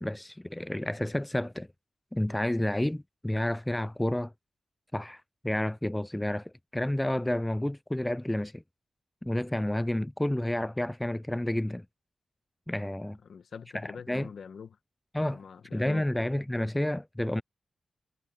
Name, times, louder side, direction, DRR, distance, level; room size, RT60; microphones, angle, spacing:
voice 1, 0.0-1.7 2.1-4.3 4.9-8.6 9.2-11.9 12.7-13.2 13.8-14.3 15.1-15.4 15.7-17.4, left 1 dB, 10° left, 0.3 m, -30 dB
voice 2, 13.2-14.8 15.2-16.1, left 6 dB, 75° left, 1.1 m, -44 dB
cardioid pair, 60°, 0 cm